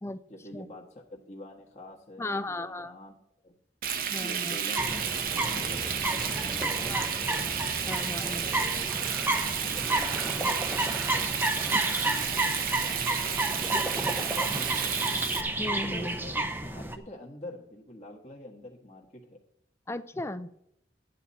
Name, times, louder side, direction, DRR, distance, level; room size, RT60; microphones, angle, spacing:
voice 1, 0.3-3.1 3.4-3.5 4.2-7.5 8.2-8.9 9.6-13.5 14.2-15.1 15.8-19.4, left 1 dB, 40° left, -1 dB, 1.5 m, -46 dB
voice 2, 2.2-2.9 4.1-4.6 6.9-7.1 7.5-7.6 7.9-8.5 15.6-16.2 19.9-20.5, left 2 dB, 15° left, 13 dB, 0.4 m, -35 dB
Frying (food), 3.8-15.4, right 8 dB, 50° right, 0.9 m, -32 dB
sound 1, 4.8-17.0, right 1 dB, 10° right, 0.7 m, -31 dB
12.5 x 9.5 x 4.2 m, 0.76 s
head